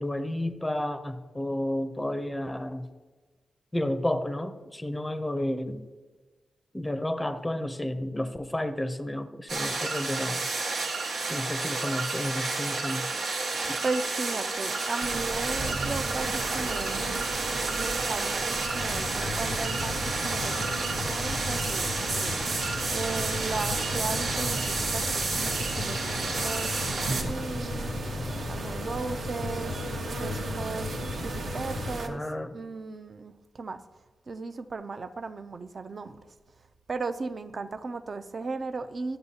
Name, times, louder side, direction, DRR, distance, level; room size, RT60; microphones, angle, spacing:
voice 1, 0.0-2.9 3.7-5.8 6.7-10.5 11.3-13.1 13.7-13.8 32.1-32.6, left 1 dB, 10° left, 0.5 m, -31 dB
sound 1, 9.5-27.2, right 3 dB, 85° right, 1.4 m, -31 dB
voice 2, 13.8-17.2 17.7-22.4 22.9-28.0 28.5-30.9 31.2-32.2 32.5-33.8 34.3-36.2 36.9-39.2, right 3 dB, 40° right, 0.4 m, -36 dB
sound 2, 15.0-32.1, right 3 dB, 65° right, 0.9 m, -35 dB
sound 3, 18.7-32.0, left 5 dB, 65° left, 0.5 m, -37 dB
13.0 x 7.7 x 2.8 m
wide cardioid pair, 140°, 0 cm